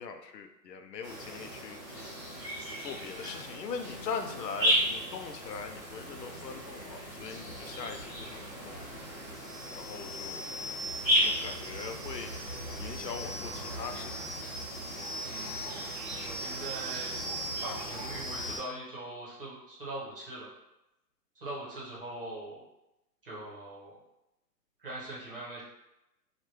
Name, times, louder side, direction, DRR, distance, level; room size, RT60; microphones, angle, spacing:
voice 1, 0.0-2.1 2.8-8.8 9.7-10.5 11.2-14.5, left 5 dB, 80° left, 6 dB, 0.6 m, -41 dB
sound 1, 1.0-18.6, equal, 10° right, 1.3 m, -35 dB
voice 2, 15.2-15.9 16.2-17.2 17.6-20.5 21.3-22.6 23.2-23.9 24.8-25.6, right 1 dB, 35° right, -7 dB, 0.9 m, -41 dB
3.2 x 2.4 x 3.0 m, 0.91 s
hypercardioid pair, 175°, 49 cm